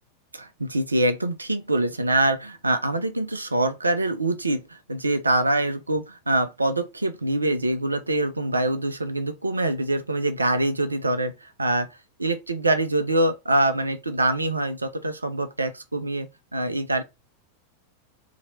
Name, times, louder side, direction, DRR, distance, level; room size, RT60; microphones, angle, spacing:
voice 1, 0.3-11.9 12.2-17.0, right 1 dB, 80° right, 0.5 m, -24 dB
2.9 x 2.8 x 2.7 m
figure-of-eight pair, 90°, 0 cm